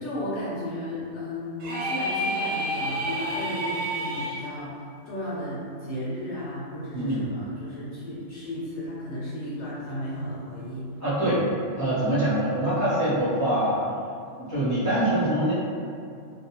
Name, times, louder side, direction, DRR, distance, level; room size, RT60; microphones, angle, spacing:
voice 1, 0.0-4.7 5.1-10.9, left 1 dB, 70° left, -7 dB, 0.8 m, -34 dB
sound 1, 1.6-4.4, equal, 80° right, 0.9 m, -29 dB
voice 2, 6.9-7.2 11.0-11.4 11.8-13.8 14.4-15.5, right 1 dB, 25° left, -12 dB, 0.4 m, -24 dB
2.5 x 2.0 x 2.8 m, 2.4 s
omnidirectional pair, 1.3 m